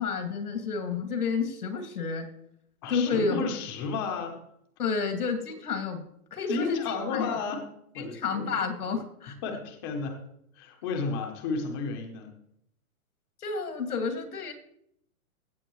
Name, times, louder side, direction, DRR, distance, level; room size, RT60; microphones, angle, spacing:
voice 1, 0.0-2.3 2.9-3.5 4.8-6.0 6.3-7.3 8.0-9.4 13.4-14.5, left 5 dB, 90° left, 6 dB, 2.2 m, -30 dB
voice 2, 2.8-4.4 6.5-7.7 7.9-8.5 9.4-10.2 10.5-12.4, left 4 dB, 15° left, 3 dB, 0.7 m, -32 dB
15.5 x 7.0 x 3.1 m, 0.72 s
hypercardioid pair, 165°, 44 cm